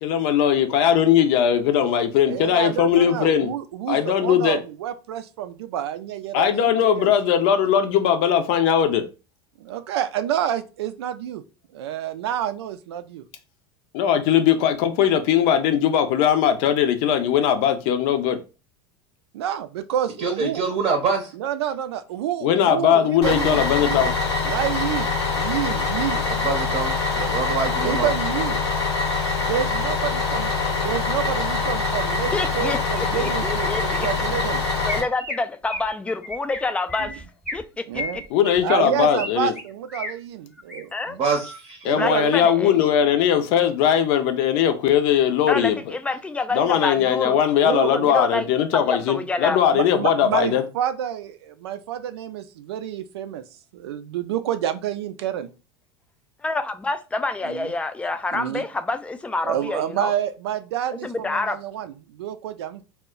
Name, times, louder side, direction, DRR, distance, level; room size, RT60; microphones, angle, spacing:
voice 1, 0.0-3.5 3.9-4.6 6.3-9.0 13.9-18.4 22.4-24.1 38.3-39.5 41.8-45.8 46.5-50.6, left 9 dB, 60° left, 0.5 m, -19 dB
voice 2, 2.3-7.1 9.6-11.4 11.7-13.2 19.3-20.6 21.3-24.0 24.4-25.1 25.4-26.3 27.8-28.6 29.4-34.6 37.0-37.2 37.9-38.2 38.6-40.9 41.9-42.5 47.6-48.1 49.7-53.4 53.7-55.5 57.4-57.7 58.3-58.7 59.4-62.8, right 10 dB, 75° right, 0.4 m, -28 dB
voice 3, 20.2-21.3 26.3-28.1 41.1-41.9, right 4 dB, 40° right, 0.7 m, -25 dB
Bus, 23.2-35.0, left 4 dB, 90° left, 0.9 m, -24 dB
voice 4, 32.3-34.1 34.9-37.2 37.5-38.0 40.9-41.2 42.0-42.7 45.5-47.4 47.7-48.5 48.9-49.6 56.4-60.1 61.0-61.6, left 3 dB, 10° left, 0.3 m, -27 dB
Chirp tweet, 34.9-35.4 35.7-35.9 36.2-36.6 36.9-37.6 37.9-39.3 39.5-40.1 40.5-40.8 41.2-41.6, left 2 dB, 10° right, 0.9 m, -33 dB
2.2 x 2.1 x 3.6 m
hypercardioid pair, 85°, 14 cm